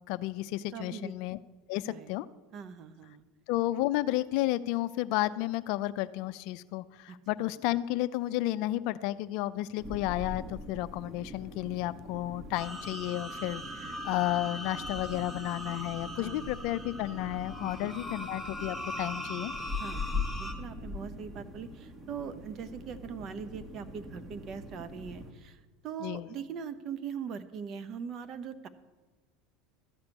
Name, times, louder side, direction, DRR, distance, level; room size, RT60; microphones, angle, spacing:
voice 1, 0.1-1.4 1.7-2.3 3.5-19.5 26.0-26.3, left 16 dB, 65° left, 15 dB, 0.4 m, -32 dB
voice 2, 0.7-1.1 1.7-2.1 2.5-3.2 7.1-7.2 16.2-16.5 17.6-17.9 19.8-28.7, right 7 dB, 45° right, 12 dB, 0.9 m, -41 dB
sound 1, 9.8-25.3, left 2 dB, 25° right, 1.9 m, -42 dB
sound 2, 12.5-20.5, equal, 5° right, 1.9 m, -41 dB
13.0 x 5.2 x 8.4 m, 1.3 s
supercardioid pair, 105°, 0 cm